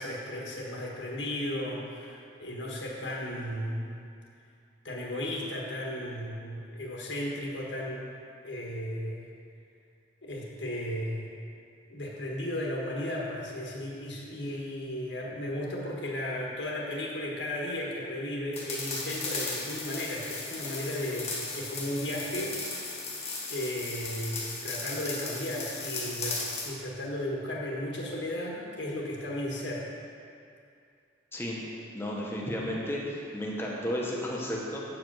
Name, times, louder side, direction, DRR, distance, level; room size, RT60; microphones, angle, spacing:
voice 1, 0.0-4.0 4.8-8.0 8.4-9.3 10.2-11.4 11.9-22.9 23.5-29.9, left 1 dB, 75° left, -3 dB, 1.4 m, -35 dB
sound 1, 18.5-26.7, left 3 dB, 35° left, 1.3 m, -36 dB
voice 2, 31.3-31.6 31.9-34.8, equal, 10° left, -4 dB, 1.1 m, -33 dB
8.1 x 5.0 x 6.1 m, 2.5 s
head